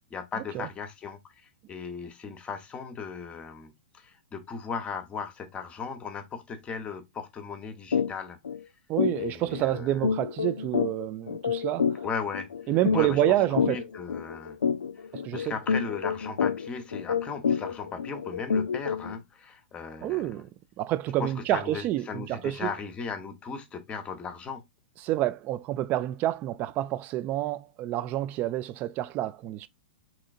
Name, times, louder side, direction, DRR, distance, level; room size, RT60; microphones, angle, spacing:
voice 1, 0.0-8.4 9.2-10.1 12.0-13.2 13.5-14.6 14.9-20.4 21.2-24.6, left 5 dB, 20° left, 0.8 m, -37 dB
sound 1, 7.9-8.1 8.4-8.6 9.0-19.2, left 6 dB, 85° left, 0.3 m, -29 dB
voice 2, 8.9-12.0 12.7-13.8 15.1-15.5 20.0-20.5 20.8-22.7 25.0-29.7, right 14 dB, 30° right, 0.3 m, -28 dB
3.8 x 3.0 x 2.4 m
hypercardioid pair, 115°, 5 cm